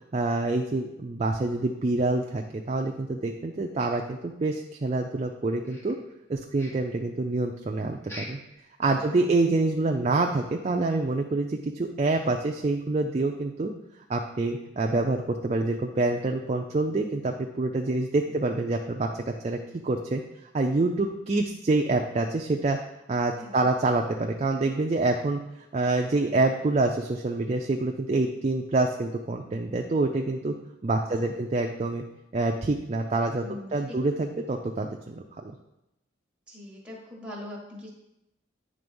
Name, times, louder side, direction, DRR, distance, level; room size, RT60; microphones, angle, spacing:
voice 1, 0.1-6.0 6.3-8.4 8.8-13.7 14.1-20.2 20.5-22.8 23.1-25.4 25.7-30.5 30.8-32.0 32.3-33.4 33.7-35.6, right 2 dB, 35° right, 2 dB, 0.4 m, -26 dB
sound 1, 5.6-6.3 6.5-7.0 8.0-8.5 8.9-9.0 9.4-9.5 10.0-10.1, equal, 15° left, 1.0 m, -43 dB
voice 2, 8.9-9.4 23.4-23.6 31.0-31.4 33.4-33.7 36.5-37.9, left 1 dB, 5° right, -4 dB, 1.5 m, -43 dB
9.1 x 3.4 x 5.3 m, 0.88 s
head